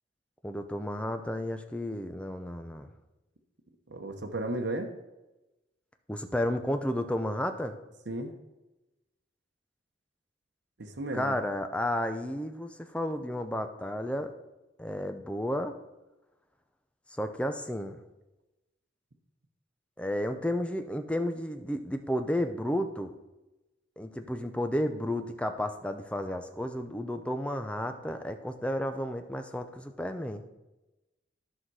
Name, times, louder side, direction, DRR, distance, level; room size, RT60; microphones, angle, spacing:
voice 1, 0.4-2.9 6.1-7.8 11.1-14.3 14.8-15.7 17.2-18.0 20.0-23.1 24.0-30.4, left 1 dB, 5° left, 7 dB, 0.6 m, -32 dB
voice 2, 3.9-4.9 8.1-8.3 10.8-11.4, right 1 dB, 75° right, 3 dB, 1.0 m, -34 dB
10.5 x 5.8 x 4.8 m, 1.0 s
head